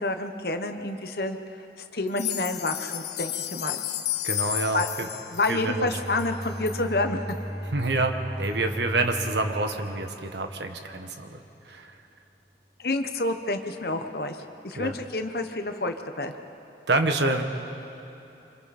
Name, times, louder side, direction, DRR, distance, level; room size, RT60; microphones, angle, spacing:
voice 1, 0.0-1.4 1.9-3.8 4.7-4.9 5.3-7.2 12.8-14.4 14.6-16.3, left 2 dB, 60° left, 7 dB, 1.2 m, -28 dB
sound 1, 2.1-6.8 7.3-7.4 7.8-7.9 8.4-8.5, left 13 dB, 75° left, 0.8 m, -33 dB
voice 2, 4.2-5.1 5.5-5.9 7.7-11.4 11.7-11.9 14.8-15.0 16.9-17.4, right 2 dB, 80° right, 6 dB, 1.4 m, -27 dB
Bowed string instrument, 5.6-10.9, equal, 25° right, 2.6 m, -36 dB
27.5 x 25.5 x 4.3 m, 3.0 s
head